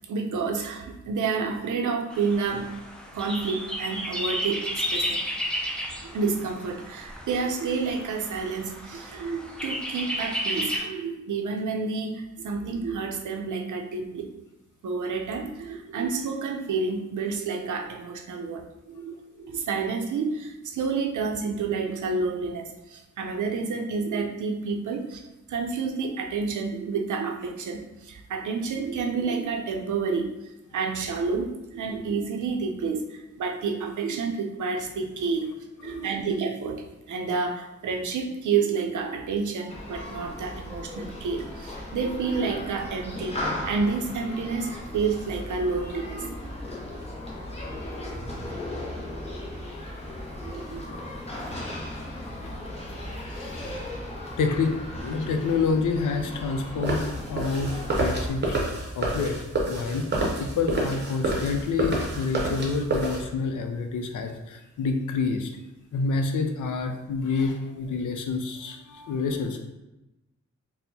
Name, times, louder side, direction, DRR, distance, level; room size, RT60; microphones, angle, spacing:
voice 1, 0.1-2.7 3.1-5.2 6.0-14.3 14.8-25.2 25.5-35.4 35.8-46.5 50.4-51.0 57.4-57.5, right 4 dB, 80° right, 3 dB, 0.5 m, -29 dB
sound 1, 2.1-10.8, equal, 5° left, 0.3 m, -33 dB
Human group actions, 39.7-58.3, left 1 dB, 20° left, 0.7 m, -37 dB
voice 2, 53.2-53.9 54.4-54.7 55.0-57.7 58.0-58.6 58.9-59.4 59.7-60.0 60.4-65.5 65.9-69.6, left 4 dB, 85° left, 5 dB, 0.5 m, -28 dB
sound 2, 56.8-63.2, right 2 dB, 35° right, 0.7 m, -28 dB
4.3 x 2.0 x 2.7 m, 0.97 s
wide cardioid pair, 150°, 30 cm